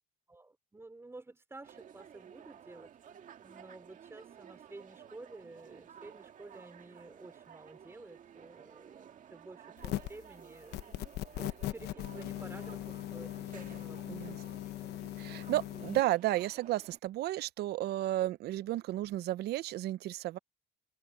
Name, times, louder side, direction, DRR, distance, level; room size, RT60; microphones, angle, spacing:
voice 1, 0.3-11.0 11.4-14.4 14.8-14.9, right 2 dB, 15° right, 4.2 m, -52 dB
sound 1, 1.6-17.0, right 9 dB, 50° right, 1.8 m, -54 dB
sound 2, 9.8-10.2 10.7-16.0, left 15 dB, 80° left, 0.9 m, -39 dB
voice 2, 15.2-20.4, right 15 dB, 75° right, 0.8 m, -33 dB
cardioid pair, 110°, 17 cm